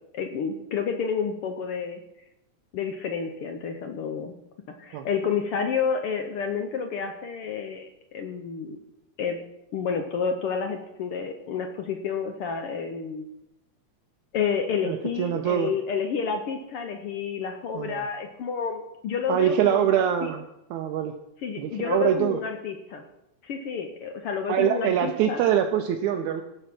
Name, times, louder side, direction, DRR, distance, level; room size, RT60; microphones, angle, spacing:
voice 1, 0.1-2.0 2.7-4.3 4.8-8.8 9.2-9.4 9.7-13.3 14.3-20.3 21.4-23.0 23.4-25.4, left 6 dB, 70° left, 5 dB, 1.4 m, -30 dB
voice 2, 14.8-15.8 17.7-18.0 19.3-20.4 20.7-21.2 21.6-22.4 24.5-26.4, right 10 dB, 80° right, 4 dB, 2.0 m, -24 dB
16.0 x 5.6 x 6.0 m, 0.87 s
omnidirectional pair, 3.4 m